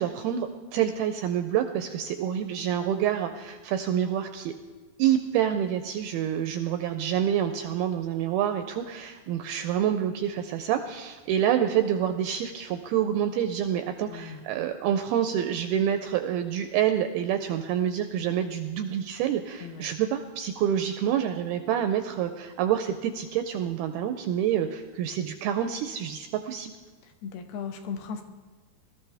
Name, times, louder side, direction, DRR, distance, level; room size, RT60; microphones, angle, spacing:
voice 1, 0.0-4.5 5.0-26.7, right 10 dB, 85° right, 8 dB, 2.3 m, -27 dB
voice 2, 14.1-14.4 19.6-19.9 27.0-28.2, left 6 dB, 75° left, 5 dB, 2.9 m, -37 dB
20.5 x 13.5 x 3.4 m, 1.5 s
omnidirectional pair, 5.0 m